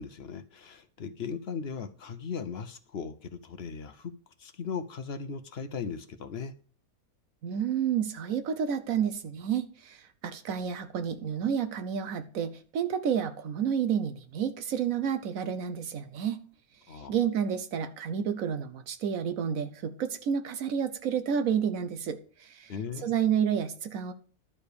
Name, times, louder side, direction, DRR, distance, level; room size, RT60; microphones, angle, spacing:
voice 1, 0.0-4.1 4.4-6.5 16.9-17.2 22.7-23.1, left 6 dB, 55° left, 0.8 m, -38 dB
voice 2, 7.4-16.4 16.9-22.7 23.0-24.1, right 8 dB, 70° right, 1.2 m, -30 dB
11.0 x 4.9 x 6.8 m
omnidirectional pair, 1.5 m